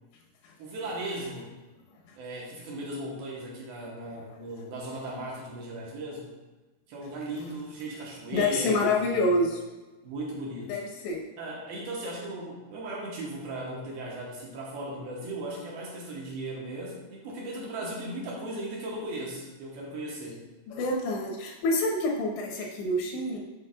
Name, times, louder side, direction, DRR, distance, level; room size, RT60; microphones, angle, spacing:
voice 1, 0.6-1.5 2.2-6.3 6.9-9.4 10.0-10.8 11.4-20.4, right 1 dB, 70° right, -3 dB, 2.7 m, -37 dB
voice 2, 8.3-9.6 10.7-11.2 20.7-23.4, left 2 dB, 85° left, 0 dB, 3.3 m, -27 dB
8.4 x 6.0 x 2.3 m, 1.2 s
omnidirectional pair, 4.9 m